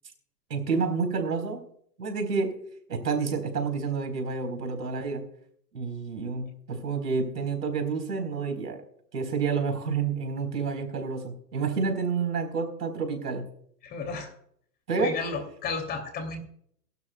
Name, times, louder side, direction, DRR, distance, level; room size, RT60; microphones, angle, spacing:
voice 1, 0.5-1.7 2.0-2.6 2.9-5.3 5.7-8.8 9.1-13.5 14.9-15.2, right 5 dB, 70° right, 6 dB, 4.3 m, -29 dB
voice 2, 13.8-14.3 15.0-16.4, left 4 dB, 20° left, 6 dB, 2.7 m, -33 dB
21.5 x 12.0 x 2.3 m, 0.64 s
hypercardioid pair, 130°, 49 cm